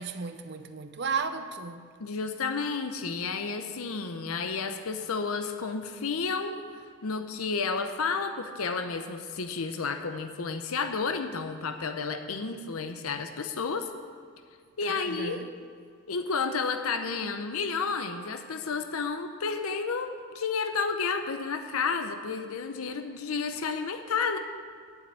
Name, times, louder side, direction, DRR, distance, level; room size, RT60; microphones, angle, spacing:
voice 1, 0.0-1.9 14.9-15.5, right 5 dB, 50° right, 0.6 m, -34 dB
voice 2, 2.0-6.6 7.0-13.9 14.8-15.4 16.1-24.4, left 5 dB, 80° left, 0.7 m, -31 dB
8.6 x 7.7 x 9.0 m
head